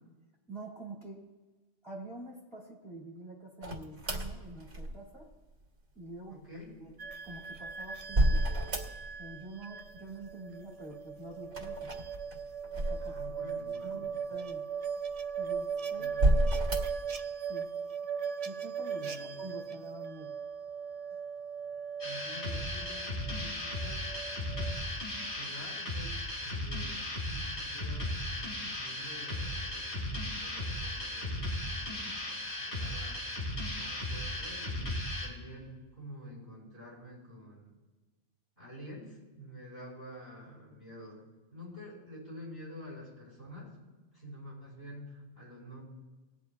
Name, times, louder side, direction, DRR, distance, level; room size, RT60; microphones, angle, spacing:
voice 1, 0.5-1.3 1.8-5.3 5.9-6.4 6.8-6.9 7.2-8.4 9.2-11.8 12.7-13.1 13.8-14.6 15.4-16.1 17.5-17.7 18.4-20.3, right 2 dB, ahead, -4 dB, 2.3 m, -46 dB
sound 1, 3.6-5.3 7.1-9.3 9.6-10.3 11.4-13.6 14.2-14.3 15.1-15.6 16.1-17.1, right 1 dB, 75° right, 2.2 m, -30 dB
voice 2, 6.3-6.8 13.0-14.1 16.0-16.6 19.0-19.5 22.0-24.1 24.8-24.9 25.3-27.0 27.3-32.2 32.6-33.2 33.7-37.8 38.6-41.2 41.5-43.7 44.1-45.8, equal, 40° left, -5 dB, 4.7 m, -48 dB
sound 2, 7.0-24.9, right 6 dB, 45° right, 0.5 m, -39 dB
sound 3, 22.0-35.3, left 1 dB, 65° left, 2.9 m, -36 dB
20.0 x 10.0 x 2.4 m, 1.2 s
omnidirectional pair, 1.2 m